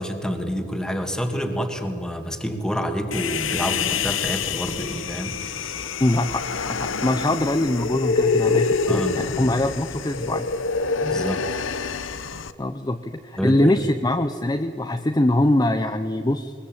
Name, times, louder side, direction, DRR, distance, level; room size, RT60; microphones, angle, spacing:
voice 1, 0.0-5.8 8.9-9.2 11.0-11.6 13.4-13.8, equal, 5° left, 5 dB, 2.0 m, -28 dB
Human voice, 3.1-12.5, left 5 dB, 85° left, 0.9 m, -26 dB
voice 2, 6.0-10.5 12.6-16.5, left 1 dB, 20° left, 7 dB, 0.7 m, -23 dB
22.5 x 21.0 x 8.8 m, 2.4 s
head